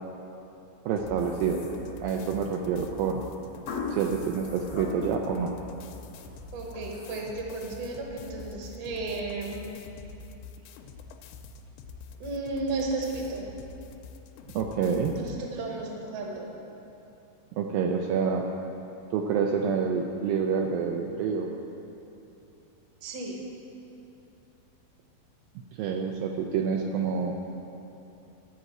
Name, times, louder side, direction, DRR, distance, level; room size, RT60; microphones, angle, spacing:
voice 1, 0.9-1.6 2.0-3.2 3.9-5.5 14.5-15.2 17.6-18.4 19.1-21.5 25.8-27.4, right 6 dB, 90° right, 1 dB, 2.0 m, -27 dB
sound 1, 1.0-15.4, left 4 dB, 85° left, 2.7 m, -46 dB
sound 2, 1.2-2.3 3.7-5.4 5.8-6.2 6.7-7.2, left 4 dB, 65° left, 1.5 m, -38 dB
voice 2, 6.5-9.7 12.2-13.5 15.1-16.5 23.0-23.4, right 3 dB, 65° right, 0 dB, 1.6 m, -34 dB
12.5 x 4.9 x 7.8 m, 2.9 s
omnidirectional pair, 4.8 m